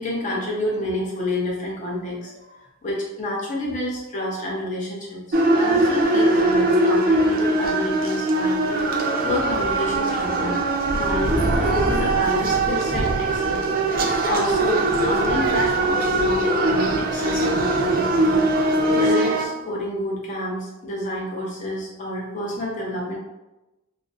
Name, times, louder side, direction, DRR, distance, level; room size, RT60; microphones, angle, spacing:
voice 1, 0.0-8.6 9.2-10.6 10.9-18.3 18.9-23.2, left 1 dB, 35° left, -4 dB, 0.6 m, -29 dB
sound 1, 5.3-19.5, right 2 dB, 45° right, 0.3 m, -21 dB
sound 2, 10.8-19.2, right 1 dB, 70° left, 0.9 m, -31 dB
2.4 x 2.0 x 2.6 m, 0.98 s
head